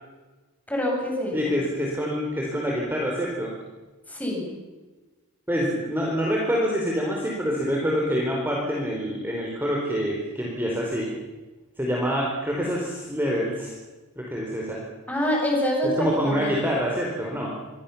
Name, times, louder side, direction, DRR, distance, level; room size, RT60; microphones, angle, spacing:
voice 1, 0.7-1.5 4.1-4.5 15.1-16.7, left 1 dB, 5° left, -1 dB, 7.9 m, -26 dB
voice 2, 1.3-3.5 5.5-11.1 11.8-13.7 14.2-14.8 16.0-17.5, equal, 10° right, -2 dB, 4.3 m, -26 dB
26.5 x 23.0 x 7.2 m, 1.2 s
head